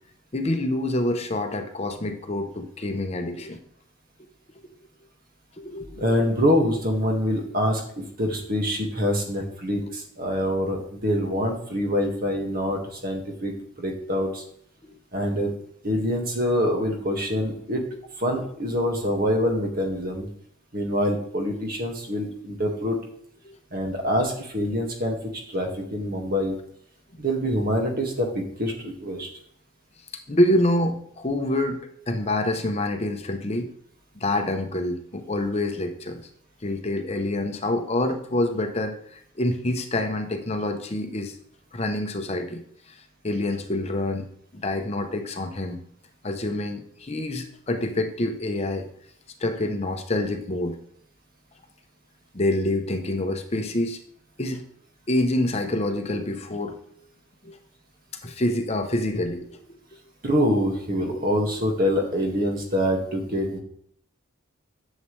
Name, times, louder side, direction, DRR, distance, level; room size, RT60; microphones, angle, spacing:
voice 1, 0.3-3.6 5.6-5.9 14.8-14.9 23.4-23.6 30.3-33.7 34.2-36.2 36.6-41.4 41.7-44.3 44.5-45.8 46.2-48.9 49.4-50.8 52.3-54.0 54.4-54.6 55.1-56.8 57.4-57.6 58.2-59.6, left 1 dB, 30° left, 6 dB, 0.7 m, -26 dB
voice 2, 5.9-14.4 15.1-15.5 15.8-17.8 18.2-20.3 20.7-23.0 23.7-25.2 25.5-26.6 27.2-29.3 60.2-63.6, equal, 45° right, 1 dB, 1.9 m, -25 dB
10.5 x 7.4 x 3.2 m, 0.65 s
head